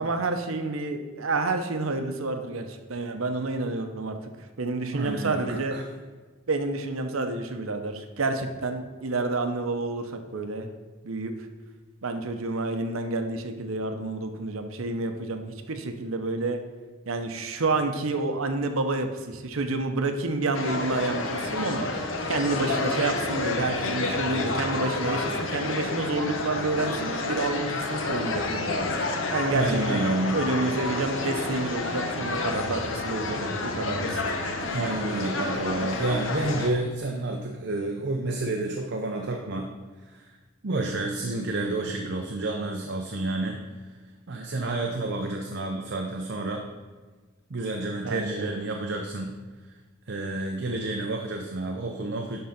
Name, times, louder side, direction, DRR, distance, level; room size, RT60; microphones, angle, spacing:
voice 1, 0.0-4.2 4.6-5.8 6.5-10.7 11.0-11.3 12.0-16.6 17.1-21.9 22.3-28.9 29.3-30.0 30.3-34.2 48.0-48.6, right 3 dB, 85° right, 7 dB, 0.9 m, -29 dB
voice 2, 4.9-5.8 29.5-30.4 34.7-39.7 40.0-40.3 40.6-43.6 44.3-46.6 47.5-49.4 50.1-52.4, right 2 dB, 55° right, 3 dB, 0.7 m, -29 dB
sound 1, 20.5-36.7, left 3 dB, 70° left, 1.0 m, -29 dB
11.0 x 3.8 x 5.8 m, 1.4 s
head